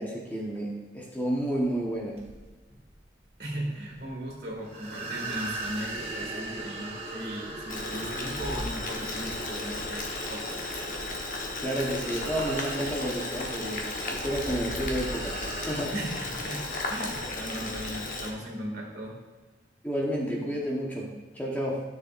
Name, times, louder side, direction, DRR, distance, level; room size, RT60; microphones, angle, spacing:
voice 1, 0.0-2.2 11.6-13.8 14.1-15.4 15.7-15.9 19.8-21.1 21.3-21.8, right 1 dB, 10° left, -3 dB, 1.1 m, -30 dB
sound 1, 1.4-15.9, right 1 dB, 35° right, 1.2 m, -39 dB
voice 2, 3.4-10.9 11.5-11.6 15.9-19.2, right 1 dB, 60° right, -2 dB, 2.2 m, -37 dB
Boiling, 7.7-18.3, left 2 dB, 45° left, 1.1 m, -35 dB
12.5 x 6.9 x 2.5 m, 1.3 s
head